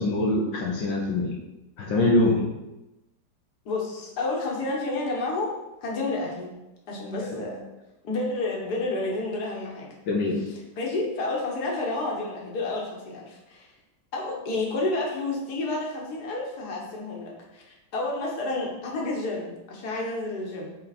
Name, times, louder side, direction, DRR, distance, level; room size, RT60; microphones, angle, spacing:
voice 1, 0.0-1.4 1.8-2.5 10.1-10.4, left 2 dB, 80° left, -2 dB, 1.6 m, -23 dB
voice 2, 3.7-5.6 5.8-6.5 6.9-7.6 8.0-9.9 10.8-13.7 14.1-20.7, left 2 dB, 60° left, -2 dB, 1.9 m, -30 dB
8.0 x 4.0 x 4.2 m, 1.0 s
omnidirectional pair, 2.0 m